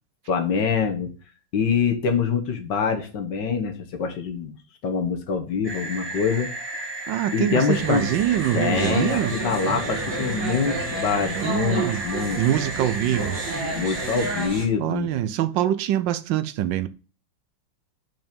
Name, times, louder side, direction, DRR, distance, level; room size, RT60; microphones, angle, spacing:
voice 1, 0.3-1.1 1.5-4.6 4.8-6.5 7.3-8.0 8.5-12.4 13.7-15.1, left 6 dB, 70° left, 1.7 m, -25 dB
sound 1, 5.6-14.5, right 1 dB, 15° right, 1.8 m, -34 dB
voice 2, 7.1-9.3 11.4-12.0 12.4-13.4 14.8-16.9, right 11 dB, 80° right, 1.3 m, -24 dB
sound 2, 7.7-14.7, right 3 dB, 60° right, 2.3 m, -31 dB
5.9 x 5.3 x 5.2 m
omnidirectional pair, 2.1 m